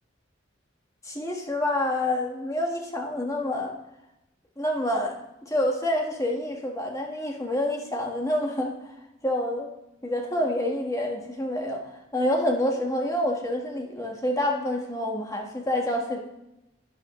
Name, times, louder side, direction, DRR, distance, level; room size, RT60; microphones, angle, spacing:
voice 1, 1.0-3.7 4.6-8.9 9.2-9.7 10.0-16.2, left 1 dB, 15° left, 0 dB, 1.5 m, -27 dB
11.5 x 9.7 x 3.2 m, 0.91 s
head